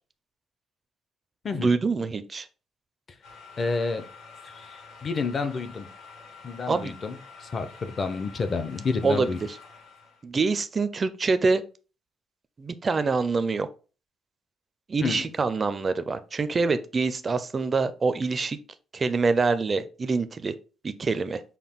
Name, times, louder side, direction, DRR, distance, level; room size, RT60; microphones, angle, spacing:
voice 1, 1.5-2.5 6.7-6.9 9.0-9.3 10.2-11.6 12.6-13.7 14.9-18.6 18.9-20.5 20.8-21.4, right 4 dB, 30° right, 0.4 m, -25 dB
sound 1, 3.2-10.2, left 5 dB, 80° left, 2.1 m, -48 dB
voice 2, 3.6-4.1 4.5-5.9 6.4-9.4 15.0-15.3, left 4 dB, 35° left, 0.6 m, -30 dB
5.7 x 2.2 x 3.5 m
cardioid pair, 125°, 0 cm